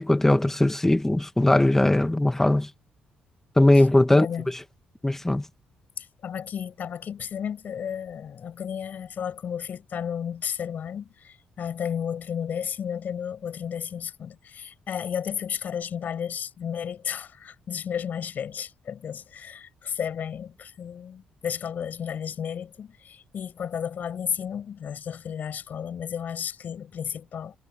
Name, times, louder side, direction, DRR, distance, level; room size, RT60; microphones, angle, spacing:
voice 1, 0.0-2.7 3.6-4.6 5.0-5.5, left 1 dB, 10° left, 1.7 m, -20 dB
voice 2, 4.1-4.5 6.0-27.5, left 8 dB, 60° left, 7.8 m, -33 dB
cardioid pair, 75°, 3 cm